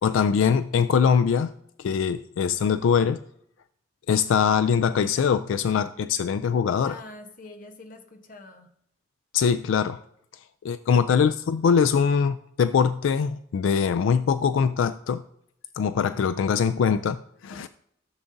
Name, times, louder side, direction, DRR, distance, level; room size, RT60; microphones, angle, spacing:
voice 1, 0.0-1.5 1.8-3.2 4.1-7.0 9.3-10.0 10.6-15.2 15.8-17.7, left 6 dB, 80° left, 12 dB, 0.3 m, -22 dB
voice 2, 6.8-8.7 17.5-17.7, left 2 dB, 45° left, 6 dB, 1.0 m, -45 dB
14.5 x 7.0 x 2.6 m, 0.71 s
head